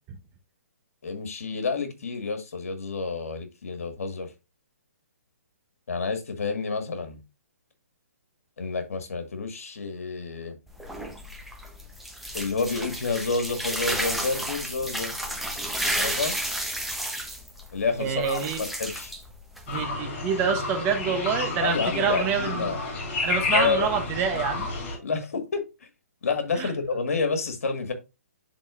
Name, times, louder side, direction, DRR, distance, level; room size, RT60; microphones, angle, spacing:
voice 1, 1.0-4.3 5.9-7.2 8.6-10.6 12.3-15.2 15.9-16.3 17.7-19.1 21.6-22.8 23.5-23.9 25.0-25.7 26.2-27.9, left 4 dB, 70° left, 1.9 m, -29 dB
sound 1, 10.7-19.8, right 1 dB, ahead, 0.9 m, -32 dB
voice 2, 18.0-18.6 19.7-22.8 23.2-24.7 26.6-26.7, right 7 dB, 25° right, 1.0 m, -27 dB
sound 2, 19.7-25.0, left 3 dB, 45° left, 4.3 m, -30 dB
11.0 x 3.9 x 2.6 m
hypercardioid pair, 135°, 8 cm